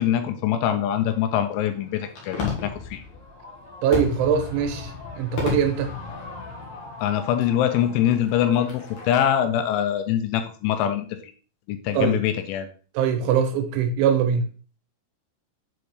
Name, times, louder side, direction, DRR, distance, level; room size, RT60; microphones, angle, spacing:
voice 1, 0.0-3.0 7.0-11.1 11.7-12.7, left 10 dB, 85° left, 8 dB, 3.1 m, -23 dB
Fireworks, 0.9-9.2, left 4 dB, 65° left, 1.7 m, -34 dB
voice 2, 3.8-5.9 11.9-12.2 12.9-14.5, right 8 dB, 80° right, 7 dB, 3.0 m, -22 dB
7.1 x 5.1 x 3.1 m, 0.40 s
omnidirectional pair, 5.5 m